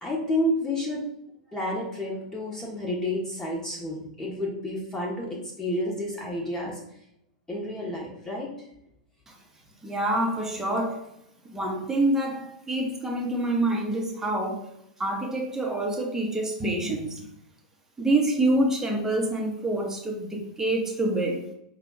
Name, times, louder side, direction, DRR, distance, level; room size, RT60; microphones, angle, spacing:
voice 1, 0.0-1.0 1.5-6.8 7.5-8.5, left 1 dB, 10° left, -4 dB, 1.2 m, -30 dB
voice 2, 9.8-11.1 11.4-14.7 15.0-17.2 18.0-21.4, right 1 dB, 10° right, 0 dB, 1.1 m, -26 dB
5.5 x 2.4 x 3.8 m, 0.77 s
hypercardioid pair, 100°, 4 cm